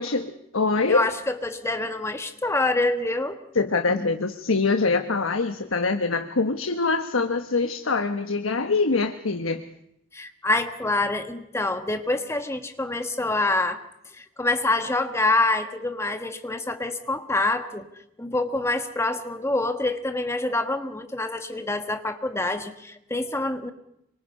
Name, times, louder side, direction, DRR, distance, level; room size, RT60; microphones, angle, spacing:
voice 1, 0.0-1.1 3.5-9.6, left 3 dB, 80° left, 7 dB, 1.2 m, -24 dB
voice 2, 0.9-3.4 3.9-4.1 10.1-13.8 14.2-17.9 18.2-23.7, left 2 dB, 15° left, 8 dB, 1.4 m, -26 dB
26.5 x 24.5 x 5.5 m, 0.78 s
head